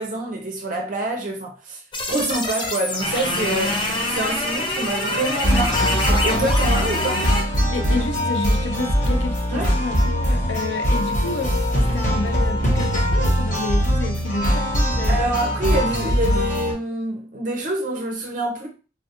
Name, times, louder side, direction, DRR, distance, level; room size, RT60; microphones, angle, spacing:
voice 1, 0.0-1.8 2.1-7.3 9.5-9.7 15.1-18.7, right 2 dB, 40° right, 0.5 m, -26 dB
sound 1, 1.9-7.4, left 1 dB, 25° left, 0.5 m, -25 dB
sound 2, 5.4-16.7, equal, 40° left, 1.1 m, -21 dB
voice 2, 7.7-15.5 16.0-16.2, left 3 dB, 80° left, 0.5 m, -30 dB
3.4 x 2.3 x 2.8 m
head